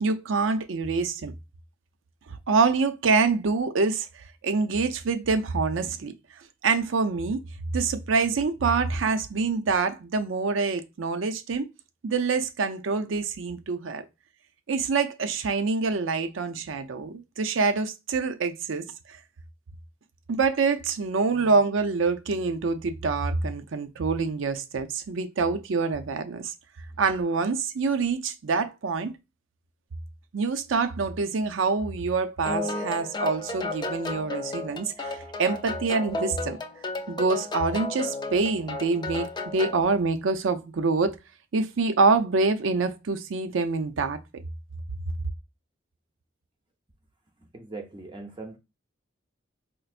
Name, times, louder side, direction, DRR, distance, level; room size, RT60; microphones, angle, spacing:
voice 1, 0.0-1.3 2.5-4.1 4.4-6.1 6.6-7.4 7.7-11.7 12.0-14.0 14.7-19.2 20.3-26.5 27.0-29.1 30.3-36.6 37.1-41.2 41.5-44.2, right 4 dB, 75° right, 0.5 m, -26 dB
sound 1, 32.5-39.8, left 2 dB, 20° left, 0.4 m, -33 dB
voice 2, 47.5-48.6, right 3 dB, 25° right, 0.6 m, -41 dB
4.4 x 2.5 x 2.4 m
head